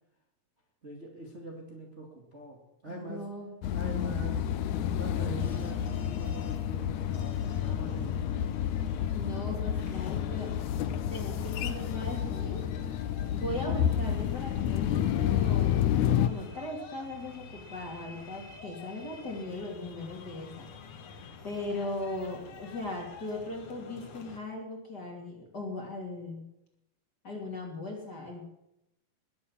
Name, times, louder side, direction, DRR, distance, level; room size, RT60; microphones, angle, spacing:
voice 1, 0.8-3.2 3.7-4.5 5.0-8.5, right 3 dB, 25° right, -1 dB, 2.1 m, -43 dB
voice 2, 2.9-3.5 9.1-10.5 11.1-12.6 13.3-20.7 21.4-26.5 27.2-28.4, left 2 dB, 30° left, -1 dB, 3.0 m, -38 dB
sound 1, 3.6-16.3, left 10 dB, 75° left, 1.9 m, -30 dB
sound 2, 5.4-24.4, left 5 dB, 55° left, 2.4 m, -48 dB
21.0 x 8.4 x 7.4 m, 0.87 s
omnidirectional pair, 4.1 m